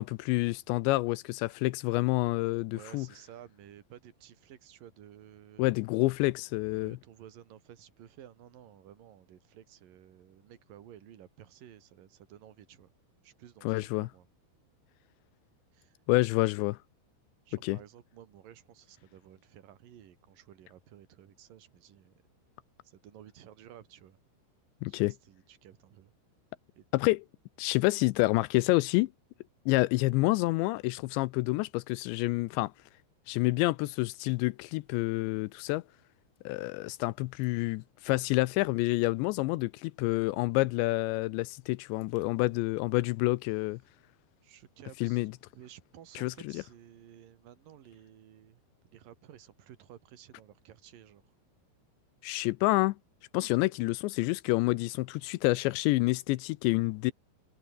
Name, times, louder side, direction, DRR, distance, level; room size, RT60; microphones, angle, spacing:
voice 1, 0.0-3.1 5.6-7.0 13.6-14.1 16.1-16.8 17.6-17.8 24.8-25.1 26.9-27.2 27.6-29.1 29.7-32.7 33.3-35.8 36.5-43.8 45.0-45.3 46.2-46.6 52.2-53.0 53.3-57.1, left 21 dB, 80° left, 2.7 m, -28 dB
voice 2, 2.7-5.7 6.7-12.9 13.2-14.3 15.7-16.0 17.5-22.1 22.8-24.2 24.9-26.1 26.8-26.9 44.4-45.3 45.5-51.3, right 11 dB, 55° right, 3.3 m, -54 dB
omnidirectional pair, 5.5 m